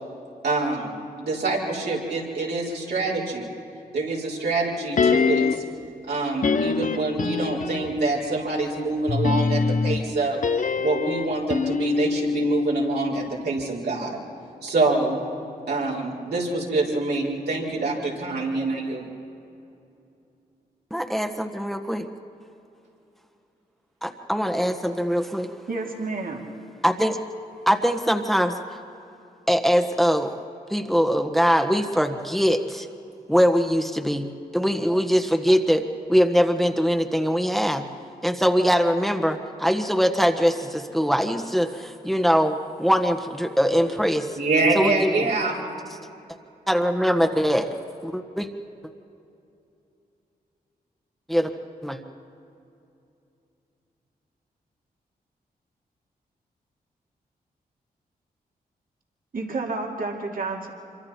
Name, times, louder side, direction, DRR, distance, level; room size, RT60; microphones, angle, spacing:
voice 1, 0.4-0.9 1.2-3.5 3.9-5.6 6.1-14.2 14.6-15.2 15.7-19.0 44.3-45.6, right 3 dB, 75° right, -5 dB, 4.7 m, -26 dB
sound 1, 5.0-5.8 6.4-8.1 9.1-13.3 13.6-13.7, left 4 dB, 50° left, 0.9 m, -24 dB
voice 2, 20.9-22.1 24.0-25.5 26.8-27.2 27.7-28.6 29.5-30.4 30.7-32.9 33.3-35.8 36.1-37.9 38.2-44.3 44.7-45.3 46.7-47.7 48.0-48.5 51.3-51.5 51.8-52.0, equal, ahead, 5 dB, 1.5 m, -22 dB
voice 3, 25.7-26.5 59.3-60.7, right 3 dB, 55° right, 0 dB, 2.7 m, -30 dB
26.0 x 24.0 x 4.5 m, 2.7 s
supercardioid pair, 45°, 17 cm